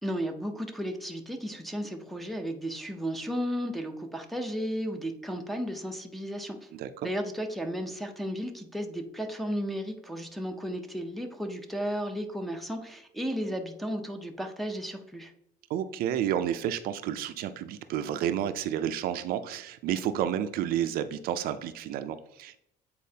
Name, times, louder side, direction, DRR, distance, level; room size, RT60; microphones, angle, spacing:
voice 1, 0.0-6.7 7.0-15.3, equal, ahead, 2 dB, 0.5 m, -34 dB
voice 2, 6.7-7.1 15.7-22.6, right 10 dB, 60° right, 11 dB, 0.4 m, -31 dB
8.3 x 4.2 x 2.7 m, 0.76 s
cardioid pair, 165°, 17 cm